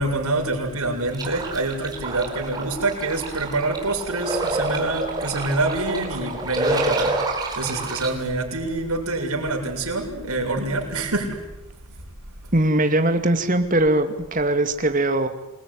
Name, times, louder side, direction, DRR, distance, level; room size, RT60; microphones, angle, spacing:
voice 1, 0.0-7.2 7.6-11.4, right 2 dB, 90° right, 1 dB, 7.3 m, -26 dB
sound 1, 1.1-8.1, right 2 dB, 20° right, 4.3 m, -28 dB
voice 2, 12.5-15.3, right 1 dB, 35° right, 6 dB, 2.5 m, -20 dB
27.5 x 21.0 x 9.9 m, 0.96 s
head